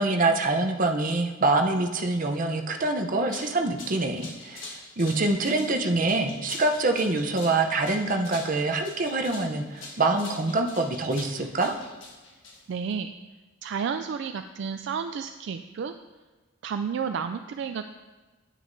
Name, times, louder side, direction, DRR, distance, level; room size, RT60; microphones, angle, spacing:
voice 1, 0.0-11.7, right 2 dB, 45° right, 4 dB, 0.7 m, -25 dB
sound 1, 3.1-12.9, left 3 dB, 75° left, 1.4 m, -44 dB
voice 2, 12.7-13.1 13.6-15.9 16.6-17.9, right 6 dB, 65° right, 8 dB, 0.3 m, -31 dB
9.2 x 9.0 x 2.7 m, 1.2 s
head